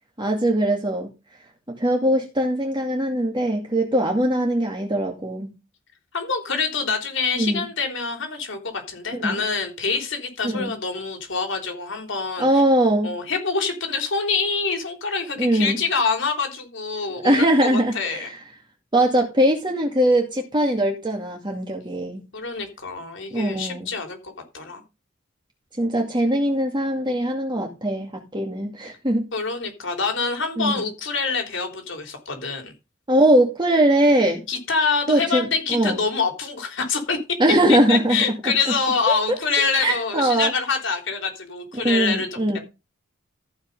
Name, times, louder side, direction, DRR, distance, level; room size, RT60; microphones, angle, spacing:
voice 1, 0.2-1.1 1.7-5.5 7.4-7.6 9.1-9.4 10.4-10.7 12.4-13.1 15.4-15.8 17.2-18.3 18.9-22.2 23.3-23.9 25.8-29.3 30.6-30.7 33.1-34.4 35.1-36.0 37.4-38.2 38.4-38.5 39.1-39.4 39.8-40.5 41.7-42.6, right 1 dB, 25° right, 1 dB, 2.2 m, -21 dB
voice 2, 6.1-12.5 13.0-18.3 22.3-24.8 29.3-32.7 34.5-37.2 37.7-42.6, left 4 dB, 65° left, 5 dB, 3.6 m, -26 dB
14.5 x 5.7 x 5.4 m, 0.27 s
head